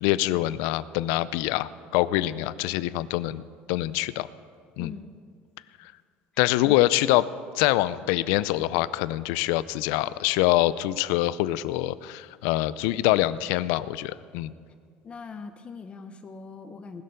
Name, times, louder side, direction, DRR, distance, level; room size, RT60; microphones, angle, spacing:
voice 1, 0.0-3.4 3.7-4.3 4.8-4.9 5.8-5.9 6.4-7.3 7.5-14.5, left 16 dB, 85° left, 17 dB, 0.4 m, -25 dB
voice 2, 4.8-5.1 6.4-6.8 15.0-17.0, left 5 dB, 25° left, 8 dB, 0.7 m, -41 dB
19.5 x 6.7 x 6.7 m, 2.1 s
cardioid pair, 135°, 4 cm